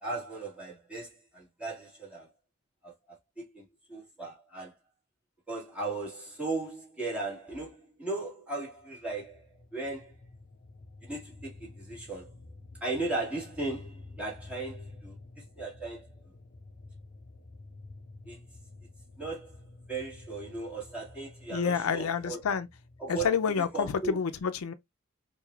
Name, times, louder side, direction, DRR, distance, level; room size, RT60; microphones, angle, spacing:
voice 1, 0.0-2.3 2.8-3.6 3.9-4.7 5.5-9.5 9.7-10.1 11.0-12.3 12.8-15.1 15.6-16.1 18.3-18.4 19.2-19.6 19.9-22.4 23.0-23.4 23.7-24.2, right 3 dB, 5° right, 1.9 m, -37 dB
sound 1, 8.8-24.2, left 2 dB, 40° left, 0.6 m, -51 dB
voice 2, 21.5-22.7 23.1-24.7, left 6 dB, 85° left, 0.5 m, -28 dB
4.8 x 2.6 x 2.4 m
head